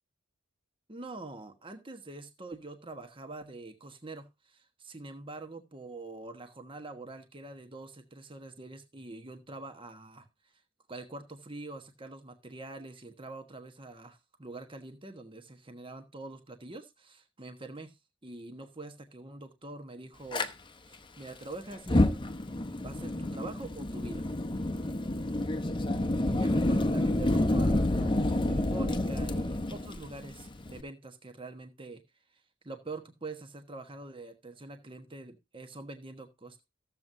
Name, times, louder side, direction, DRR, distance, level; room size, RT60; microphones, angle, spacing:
voice 1, 0.9-10.3 10.9-18.0 18.2-20.5 20.9-22.2 22.6-24.3 26.3-32.0 32.6-36.7, right 2 dB, 25° right, 6 dB, 1.2 m, -45 dB
Fire, 20.3-20.5 21.7-30.8, left 1 dB, 25° left, 0.8 m, -29 dB
14.0 x 7.6 x 2.6 m, 0.23 s
head